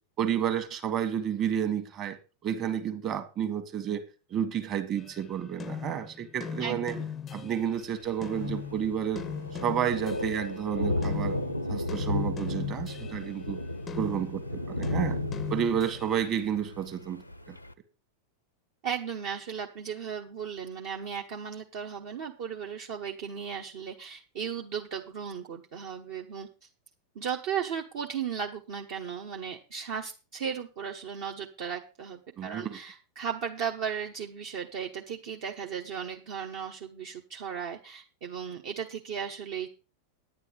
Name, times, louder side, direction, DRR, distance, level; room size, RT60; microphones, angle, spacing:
voice 1, 0.2-2.2 2.4-4.0 4.3-6.9 7.3-9.3 9.6-11.4 11.7-13.6 13.9-15.2 15.5-17.6 32.4-32.8, right 9 dB, 35° right, 8 dB, 1.7 m, -31 dB
sound 1, 5.0-7.8 8.2-10.6 11.0-16.3, left 7 dB, 20° left, 0.5 m, -39 dB
voice 2, 6.6-7.0 18.8-26.5 27.1-39.7, right 7 dB, 50° right, 0 dB, 1.1 m, -36 dB
Thunder, 7.8-17.7, left 1 dB, 90° left, 0.7 m, -34 dB
9.9 x 9.6 x 4.9 m, 0.32 s
figure-of-eight pair, 90°, 0 cm